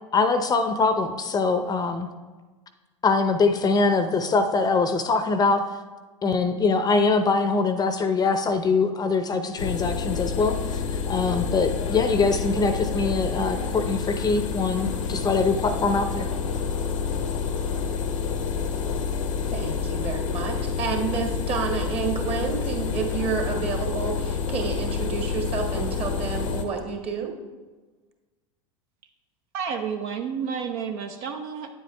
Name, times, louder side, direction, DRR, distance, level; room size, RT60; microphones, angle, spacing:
voice 1, 0.1-2.1 3.0-5.6 6.2-16.3, left 4 dB, 25° left, 9 dB, 0.6 m, -23 dB
sound 1, 9.6-26.6, left 6 dB, 85° left, 0.8 m, -28 dB
voice 2, 19.5-27.3, right 5 dB, 40° right, 2 dB, 1.7 m, -30 dB
voice 3, 29.5-31.7, right 6 dB, 60° right, 5 dB, 0.7 m, -30 dB
9.3 x 7.8 x 3.3 m, 1.3 s
hypercardioid pair, 90°, 16 cm